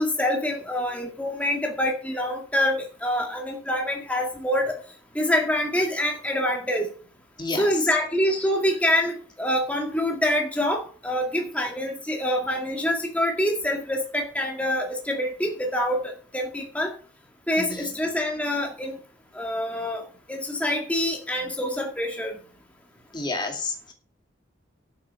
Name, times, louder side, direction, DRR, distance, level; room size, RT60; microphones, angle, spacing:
voice 1, 0.0-4.8 5.2-6.9 7.5-16.9 17.5-19.0 19.3-22.4, left 1 dB, 5° left, 1 dB, 2.0 m, -26 dB
voice 2, 7.4-7.7 17.6-17.9 23.1-23.9, left 3 dB, 20° left, 4 dB, 2.1 m, -30 dB
11.5 x 7.7 x 5.4 m, 0.40 s
head